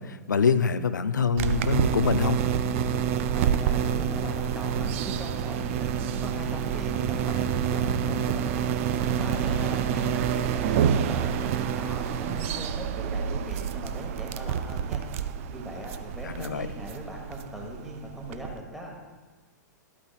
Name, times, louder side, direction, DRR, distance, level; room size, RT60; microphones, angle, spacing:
voice 1, 0.0-2.4 16.2-16.7, left 5 dB, 80° left, 13 dB, 0.4 m, -25 dB
sound 1, 1.4-18.6, right 8 dB, 45° right, 0.5 m, -28 dB
voice 2, 3.1-5.9 6.2-8.7 9.1-15.0 15.5-18.9, equal, 5° right, -1 dB, 1.2 m, -40 dB
12.0 x 8.5 x 2.4 m, 1.3 s
figure-of-eight pair, 110°, 10 cm